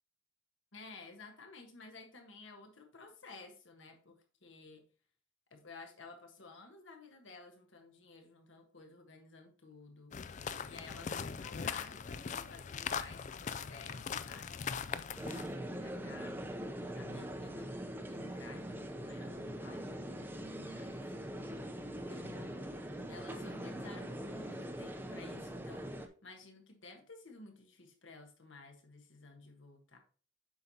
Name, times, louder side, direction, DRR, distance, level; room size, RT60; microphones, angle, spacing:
voice 1, 0.7-4.8 5.5-15.2 15.7-16.5 16.9-17.7 18.1-21.1 21.9-22.7 23.1-30.0, left 3 dB, 75° left, 4 dB, 1.4 m, -54 dB
sound 1, 10.1-15.5, left 6 dB, 35° left, 0.3 m, -40 dB
sound 2, 15.2-26.1, equal, 10° right, 0.6 m, -42 dB
7.8 x 5.5 x 2.8 m, 0.41 s
head